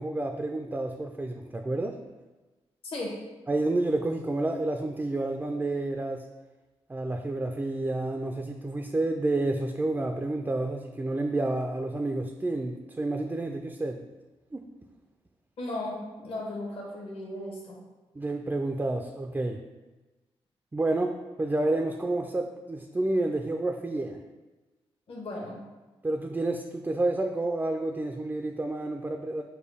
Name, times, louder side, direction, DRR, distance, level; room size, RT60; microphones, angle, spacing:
voice 1, 0.0-2.0 3.5-6.2 6.9-14.0 14.5-14.7 18.2-19.6 20.7-24.2 26.0-29.4, right 2 dB, 15° right, 4 dB, 0.3 m, -29 dB
voice 2, 15.6-17.7 25.1-25.6, left 1 dB, 65° left, -4 dB, 1.1 m, -36 dB
6.4 x 2.2 x 3.5 m, 1.2 s
cardioid pair, 65°, 10 cm